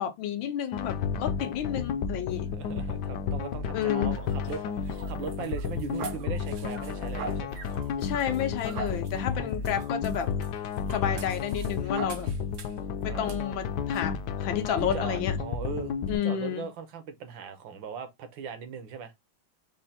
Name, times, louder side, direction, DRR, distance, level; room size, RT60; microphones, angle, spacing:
voice 1, 0.0-2.5 3.7-4.2 8.0-10.3 10.9-12.3 13.0-15.4 16.1-16.6, left 9 dB, 90° left, 1.5 m, -31 dB
sound 1, 0.7-16.2, left 6 dB, 70° left, 1.1 m, -32 dB
voice 2, 2.5-7.6 9.3-9.7 11.0-11.2 13.1-13.4 14.7-19.1, right 6 dB, 75° right, 1.6 m, -39 dB
sound 2, 4.1-12.9 13.3-13.4 13.9-14.1, right 5 dB, 60° right, 0.8 m, -43 dB
5.5 x 2.2 x 4.2 m
omnidirectional pair, 2.1 m